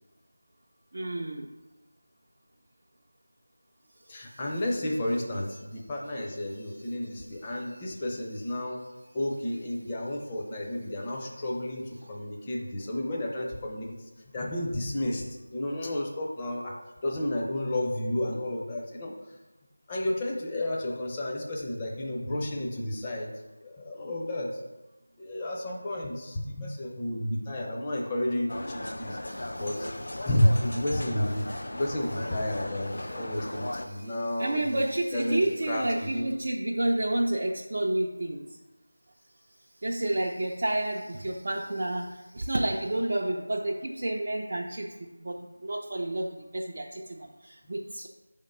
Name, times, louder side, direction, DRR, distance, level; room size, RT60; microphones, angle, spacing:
voice 1, 0.9-1.5 29.2-29.6 33.5-33.6 33.9-34.1 34.4-38.4 39.8-44.9 45.2-48.1, right 1 dB, 45° right, -2 dB, 0.4 m, -30 dB
voice 2, 4.1-8.8 9.1-13.9 14.3-19.4 19.9-23.3 23.6-24.5 25.2-29.2 29.6-29.9 30.2-31.5 31.7-35.8 36.1-36.2, left 1 dB, 20° left, -2 dB, 0.7 m, -31 dB
sound 1, 28.5-33.9, left 1 dB, 60° left, 0.5 m, -37 dB
5.0 x 3.6 x 5.3 m, 1.1 s
figure-of-eight pair, 170°, 0 cm